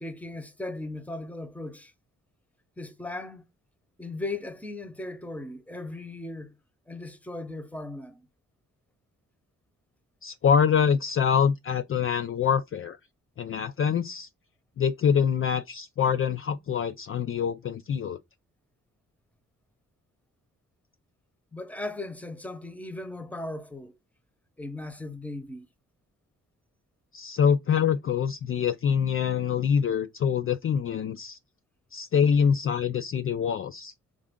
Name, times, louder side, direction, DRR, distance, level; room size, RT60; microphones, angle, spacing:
voice 1, 0.0-1.9 2.8-3.4 4.0-6.5 6.9-8.2 21.5-23.9 24.6-25.7, left 2 dB, 5° left, 0.8 m, -37 dB
voice 2, 10.2-13.0 13.4-14.3 14.8-18.2 27.1-31.4 31.9-33.9, left 7 dB, 40° left, 0.4 m, -25 dB
3.6 x 2.6 x 3.5 m
cardioid pair, 55°, 32 cm